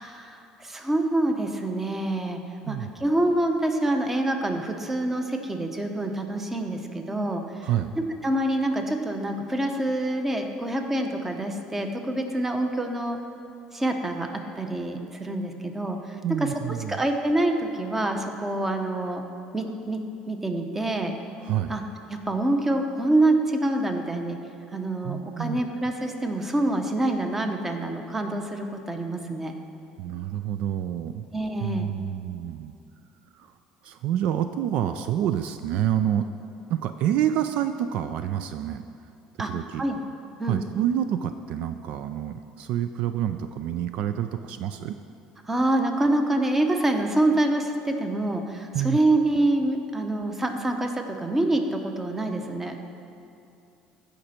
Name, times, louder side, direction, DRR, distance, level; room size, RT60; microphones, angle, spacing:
voice 1, 0.0-2.4 2.7-7.7 8.0-13.2 13.7-16.5 16.9-19.2 19.5-20.0 20.3-21.1 21.7-21.8 22.1-24.4 24.7-29.6 31.3-31.9 39.4-40.0 40.4-40.6 45.4-52.8, right 1 dB, 15° right, 5 dB, 0.9 m, -26 dB
voice 2, 7.6-8.0 16.2-17.0 21.4-21.7 25.0-25.6 30.0-31.3 31.6-32.7 33.3-33.5 33.8-36.3 36.7-38.8 39.4-39.8 40.4-45.0 48.7-49.0, right 10 dB, 65° right, 10 dB, 0.4 m, -28 dB
14.5 x 5.2 x 4.3 m, 2.6 s
supercardioid pair, 100°, 2 cm